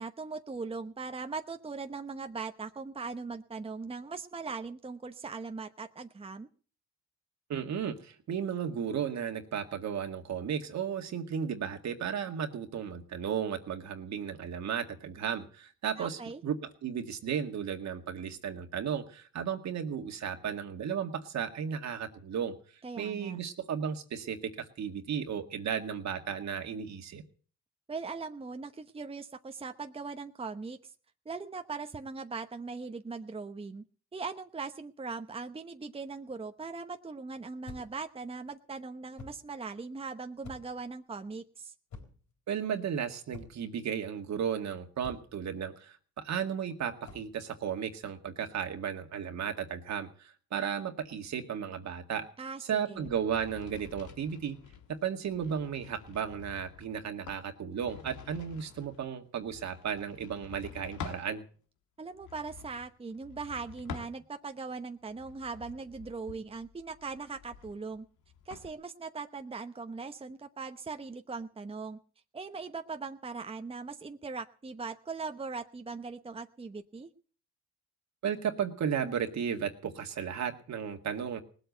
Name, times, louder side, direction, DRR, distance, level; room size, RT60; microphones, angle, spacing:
voice 1, 0.0-6.5 16.0-16.4 22.8-23.4 27.9-30.9 31.2-33.8 34.1-41.7 52.4-52.6 52.9-53.1 62.0-68.0 68.5-72.0 72.3-77.1, right 4 dB, 20° right, 7 dB, 1.0 m, -40 dB
voice 2, 7.5-22.5 23.0-24.4 24.8-27.2 42.5-46.0 46.2-52.3 52.7-54.6 55.0-61.4 78.2-81.4, right 8 dB, 65° right, 5 dB, 2.1 m, -34 dB
sound 1, 37.6-38.1 39.2-39.5 40.4-40.8 41.9-42.3 43.3-43.7 45.0-45.4 47.0-47.4, left 4 dB, 65° left, 4.2 m, -48 dB
sound 2, 53.0-61.3 62.1-64.6 65.1-68.7, left 7 dB, 85° left, 1.7 m, -48 dB
19.0 x 8.0 x 8.0 m, 0.43 s
cardioid pair, 90°, 30 cm